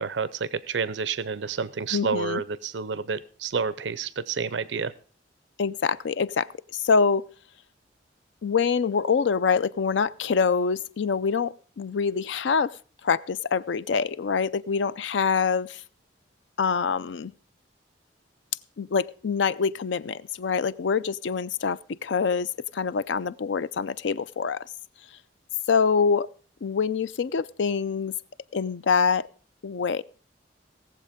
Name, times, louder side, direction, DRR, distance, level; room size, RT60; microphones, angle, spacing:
voice 1, 0.0-4.9, right 5 dB, 80° right, 17 dB, 0.5 m, -29 dB
voice 2, 1.9-2.4 5.6-7.3 8.4-12.8 13.0-15.8 16.6-17.3 18.8-24.7 25.7-26.3 26.6-28.1 28.5-29.3 29.6-30.0, left 5 dB, 85° left, 17 dB, 0.5 m, -25 dB
17.5 x 7.4 x 5.0 m, 0.41 s
head